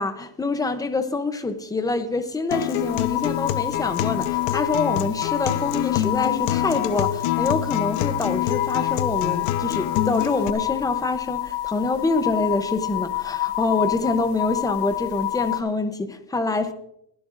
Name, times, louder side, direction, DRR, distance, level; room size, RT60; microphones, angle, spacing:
voice 1, 0.0-16.7, left 3 dB, 10° left, 0.6 m, -26 dB
Acoustic guitar, 2.5-10.5, left 12 dB, 80° left, 1.0 m, -27 dB
sound 1, 2.8-15.6, left 16 dB, 55° left, 0.9 m, -28 dB
23.0 x 11.5 x 2.5 m
cardioid pair, 150°, 50 cm